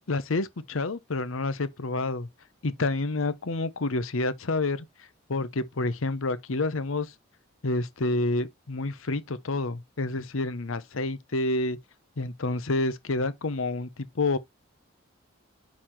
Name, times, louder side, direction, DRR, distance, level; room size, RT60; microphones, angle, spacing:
voice 1, 0.1-2.3 2.6-4.9 5.3-7.1 7.6-11.8 12.2-14.4, left 2 dB, 80° left, 0.8 m, -28 dB
10.0 x 4.2 x 3.1 m
head